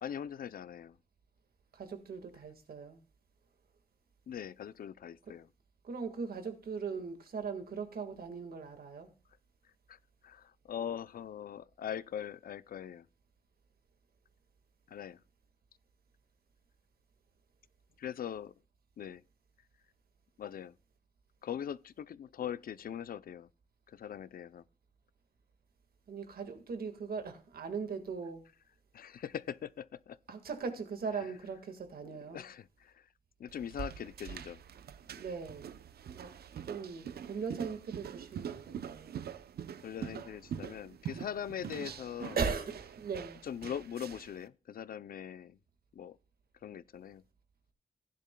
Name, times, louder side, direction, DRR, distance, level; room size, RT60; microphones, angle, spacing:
voice 1, 0.0-1.0 4.3-5.5 9.9-13.1 14.9-15.2 18.0-18.5 19.0-19.2 20.4-20.7 21.4-23.5 23.9-24.6 28.9-30.2 31.1-31.3 32.0-33.1 33.4-34.6 39.8-42.4 43.4-45.6 45.9-46.2 46.6-47.2, left 9 dB, 65° left, 0.4 m, -41 dB
voice 2, 1.7-3.0 5.8-9.1 26.1-28.4 30.3-32.4 35.1-35.8 36.1-36.3 36.6-39.1 42.4-43.4, right 5 dB, 70° right, 1.7 m, -39 dB
sound 1, 33.5-44.4, right 8 dB, 85° right, 0.6 m, -44 dB
15.5 x 10.5 x 2.2 m
wide cardioid pair, 130°, 16 cm